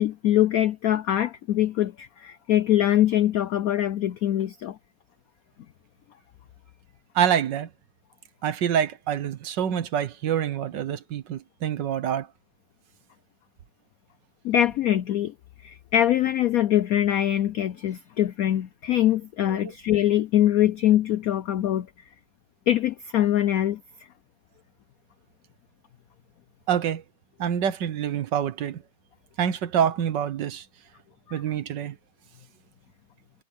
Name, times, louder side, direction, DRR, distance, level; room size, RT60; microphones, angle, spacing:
voice 1, 0.0-4.8 14.4-15.3 15.6-21.9 22.7-23.8, left 12 dB, 85° left, 0.7 m, -23 dB
voice 2, 7.1-7.7 8.4-12.3 19.5-19.7 26.7-27.0 27.4-28.8 29.4-30.6 31.3-32.0, right 9 dB, 65° right, 1.6 m, -26 dB
omnidirectional pair, 2.2 m